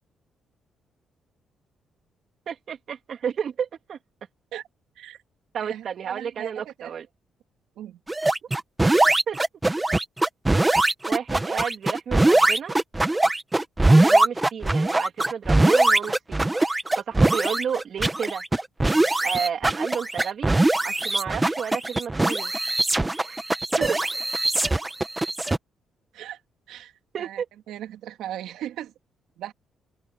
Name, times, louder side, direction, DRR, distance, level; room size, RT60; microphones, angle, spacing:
voice 1, 2.5-4.0 5.5-7.1 9.3-9.4 11.1-12.8 13.9-18.4 19.2-20.5 20.8-22.5 23.2-23.4 23.8-24.0 27.1-27.4, right 7 dB, 55° right, 3.4 m, -31 dB
voice 2, 5.6-6.5 6.8-6.9 7.8-8.0 23.8-23.9 26.1-26.4 26.7-26.9 27.2-27.4 27.7-28.9 29.4-29.5, right 12 dB, 85° right, 2.4 m, -37 dB
sound 1, 8.1-25.6, right 2 dB, 15° right, 1.5 m, -21 dB
open air
cardioid pair, 90°, 0 cm